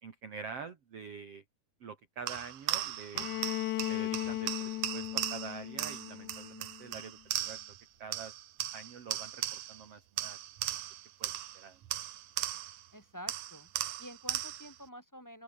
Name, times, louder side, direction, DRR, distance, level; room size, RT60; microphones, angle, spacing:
voice 1, 0.0-1.4 1.8-3.3 3.8-7.6 8.0-8.3 8.7-10.4 11.2-11.8, right 5 dB, 45° right, 2.9 m, -46 dB
sound 1, 2.3-7.8 8.1-9.9 10.2-12.9 13.3-14.8, right 13 dB, 65° right, 2.0 m, -37 dB
Bowed string instrument, 3.1-7.0, left 17 dB, 90° left, 1.6 m, -37 dB
voice 2, 12.9-13.7 14.0-15.4, equal, 5° left, 6.8 m, -48 dB
open air
omnidirectional pair, 4.4 m